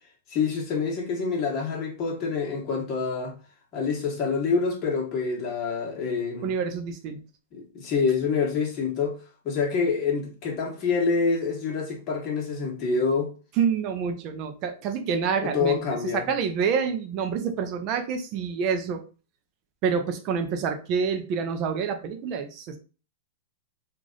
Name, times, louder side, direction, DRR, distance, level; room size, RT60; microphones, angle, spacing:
voice 1, 0.3-3.3 3.7-6.5 7.5-9.2 9.4-13.3 15.4-16.2, left 5 dB, 40° left, 1.3 m, -26 dB
voice 2, 6.4-7.2 13.6-19.0 19.8-22.8, right 6 dB, 45° right, 0.5 m, -27 dB
3.2 x 2.5 x 3.8 m
hypercardioid pair, 130°, 0 cm